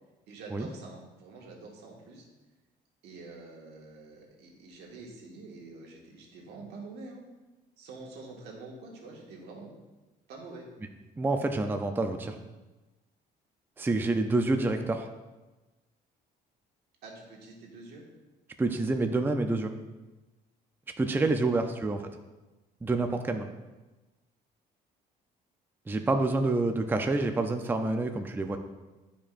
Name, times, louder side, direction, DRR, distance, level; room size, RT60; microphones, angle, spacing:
voice 1, 0.3-2.3 3.0-7.2 7.8-9.7 10.3-10.7 17.0-18.0 21.1-21.4 21.7-21.8 26.4-26.5, right 3 dB, 80° right, -1 dB, 1.8 m, -46 dB
voice 2, 11.2-12.4 13.8-15.1 18.6-19.7 21.0-22.0 22.8-23.5 25.9-28.6, right 2 dB, 10° right, 5 dB, 0.5 m, -27 dB
12.0 x 5.1 x 2.5 m, 1.1 s
cardioid pair, 110°, 17 cm